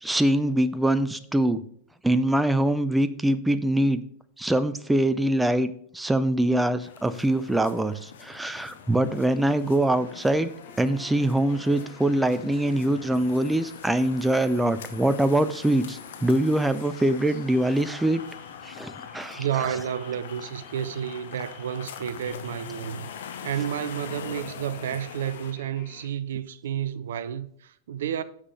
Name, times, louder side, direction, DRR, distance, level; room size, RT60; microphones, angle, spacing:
voice 1, 0.0-1.6 2.0-4.0 4.4-10.5 10.8-18.2 18.6-19.5, right 1 dB, 5° right, 0.5 m, -23 dB
sound 1, 6.8-25.5, left 7 dB, 60° left, 1.0 m, -43 dB
sound 2, 10.0-26.1, left 5 dB, 45° left, 2.1 m, -51 dB
voice 2, 19.3-23.1 23.4-28.2, right 9 dB, 60° right, 0.5 m, -31 dB
9.7 x 7.4 x 3.2 m
figure-of-eight pair, 90°, 0 cm